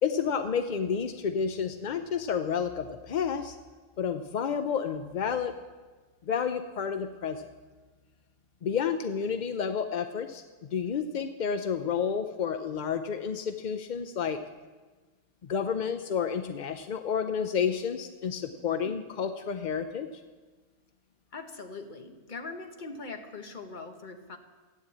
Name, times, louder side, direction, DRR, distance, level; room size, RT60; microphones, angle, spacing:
voice 1, 0.0-3.6 4.0-5.5 6.3-7.4 8.6-10.4 10.7-14.4 15.4-20.1, left 7 dB, 55° left, 8 dB, 0.5 m, -30 dB
voice 2, 21.3-24.4, left 3 dB, 40° left, 6 dB, 1.3 m, -41 dB
13.0 x 9.1 x 8.5 m, 1.3 s
omnidirectional pair, 1.4 m